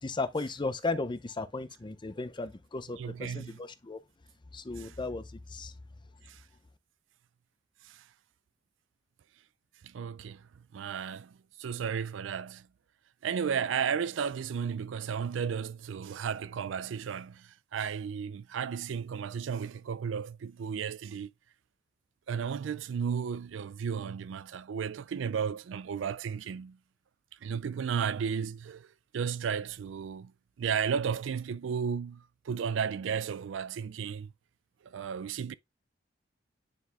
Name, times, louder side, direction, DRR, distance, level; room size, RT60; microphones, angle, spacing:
voice 1, 0.0-4.0 4.5-5.7, left 3 dB, 25° left, 0.6 m, -35 dB
voice 2, 3.0-3.5 9.9-10.4 10.7-11.3 11.6-12.6 13.2-17.4 17.7-21.3 22.3-26.8 27.4-28.8 29.1-30.3 30.6-32.2 32.5-34.3 34.9-35.5, right 7 dB, 75° right, 0.4 m, -33 dB
9.7 x 4.0 x 2.4 m
head